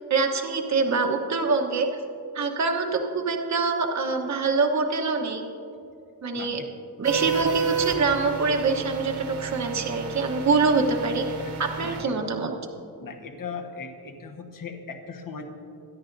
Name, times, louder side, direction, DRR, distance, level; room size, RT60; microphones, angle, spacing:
voice 1, 0.1-1.9 2.3-5.5 6.2-6.6 7.0-11.2 11.6-12.5, right 4 dB, 45° right, 3 dB, 1.1 m, -25 dB
voice 2, 6.3-6.7 7.2-7.3 11.4-11.5 11.8-12.1 13.0-15.5, left 5 dB, 55° left, 3 dB, 1.3 m, -38 dB
sound 1, 7.0-12.0, right 6 dB, 80° right, 2.0 m, -31 dB
25.5 x 10.5 x 2.6 m, 2.6 s
wide cardioid pair, 130°, 40 cm